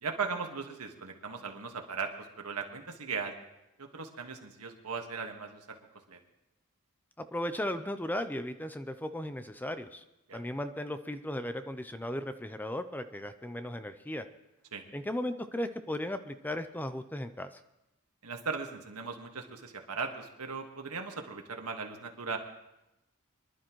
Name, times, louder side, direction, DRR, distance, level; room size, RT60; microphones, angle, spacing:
voice 1, 0.0-3.3 3.8-5.8 6.1-6.2 10.3-10.4 14.7-14.8 18.2-22.4, right 5 dB, 90° right, 4 dB, 1.6 m, -38 dB
voice 2, 7.2-10.0 10.3-14.2 14.9-17.6, left 1 dB, 10° left, 10 dB, 0.4 m, -36 dB
24.5 x 11.5 x 3.1 m, 0.92 s
head